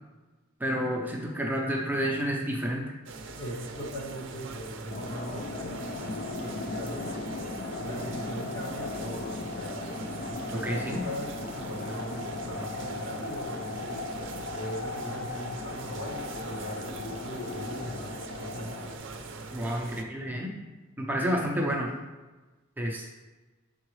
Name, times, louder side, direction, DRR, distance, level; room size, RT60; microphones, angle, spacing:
voice 1, 0.6-2.9 10.5-11.0 19.5-20.6 21.0-21.9 22.8-23.1, equal, 10° right, -1 dB, 0.6 m, -30 dB
sound 1, 3.1-20.0, right 3 dB, 55° right, 0.6 m, -42 dB
voice 2, 3.4-7.3 7.8-9.9 10.3-14.0 14.5-18.1 18.4-18.9, equal, 70° left, -3 dB, 1.7 m, -40 dB
sound 2, 4.9-19.0, left 3 dB, 45° left, 0.4 m, -37 dB
7.7 x 4.7 x 3.2 m, 1.2 s
head